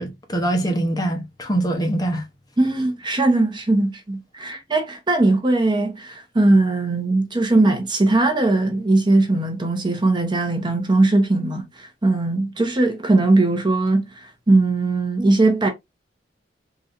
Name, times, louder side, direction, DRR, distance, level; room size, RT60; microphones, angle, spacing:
voice 1, 0.0-2.2, right 1 dB, 20° left, 0.8 m, -23 dB
voice 2, 2.6-15.7, right 2 dB, 25° right, 0.8 m, -19 dB
3.8 x 3.1 x 2.6 m
head